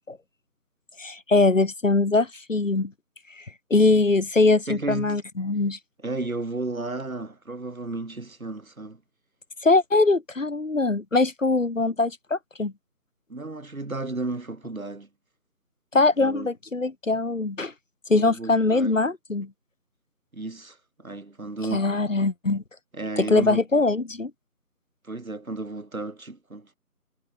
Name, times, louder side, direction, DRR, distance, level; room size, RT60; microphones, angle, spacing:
voice 1, 1.0-2.9 3.4-3.5 3.7-5.8 9.6-12.7 15.9-17.7 18.1-19.5 21.7-22.6 23.2-24.3, left 3 dB, 55° left, 2.7 m, -22 dB
voice 2, 4.7-5.2 6.0-9.0 13.3-15.1 15.9-16.5 18.1-18.9 20.3-21.9 22.9-23.6 25.0-26.8, right 2 dB, 60° right, 5.1 m, -33 dB
figure-of-eight pair, 170°, 46 cm